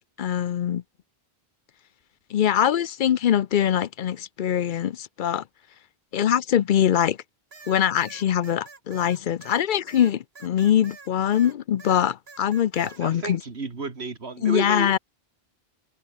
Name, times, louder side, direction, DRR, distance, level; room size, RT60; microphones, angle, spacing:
voice 1, 0.2-0.8 2.3-5.4 6.1-7.2 7.7-13.4 14.4-15.0, left 10 dB, 60° left, 0.6 m, -23 dB
sound 1, 7.5-11.5 11.8-13.0, right 4 dB, 70° right, 2.3 m, -46 dB
voice 2, 12.8-15.0, right 4 dB, 90° right, 2.5 m, -32 dB
omnidirectional pair, 1.1 m